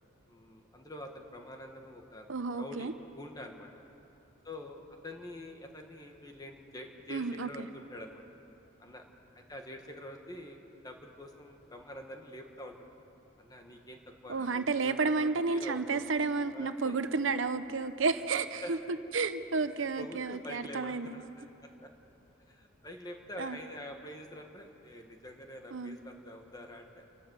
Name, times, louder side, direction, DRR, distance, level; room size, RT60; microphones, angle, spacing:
voice 1, 0.3-3.7 4.4-8.2 8.8-9.0 9.3-10.6 10.8-12.7 13.4-16.0 16.5-17.0 18.6-18.7 20.0-21.3 21.6-21.9 22.5-27.0, left 1 dB, 20° left, 3 dB, 1.6 m, -46 dB
voice 2, 2.3-2.9 7.1-7.7 14.3-21.2 23.4-23.6 25.7-26.0, right 4 dB, 80° right, 11 dB, 0.8 m, -31 dB
28.0 x 12.0 x 8.1 m, 2.9 s
head